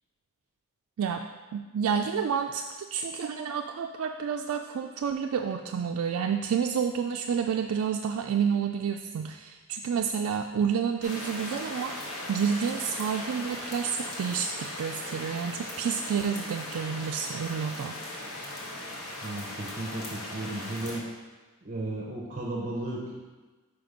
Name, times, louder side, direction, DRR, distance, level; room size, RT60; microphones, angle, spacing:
voice 1, 1.5-12.0 12.3-18.0, right 7 dB, 65° right, 4 dB, 0.3 m, -29 dB
sound 1, 11.0-21.0, left 1 dB, 65° left, 1.1 m, -38 dB
voice 2, 19.2-21.0 21.6-23.2, right 1 dB, 35° right, -3 dB, 0.7 m, -34 dB
5.1 x 4.8 x 5.0 m, 1.3 s
head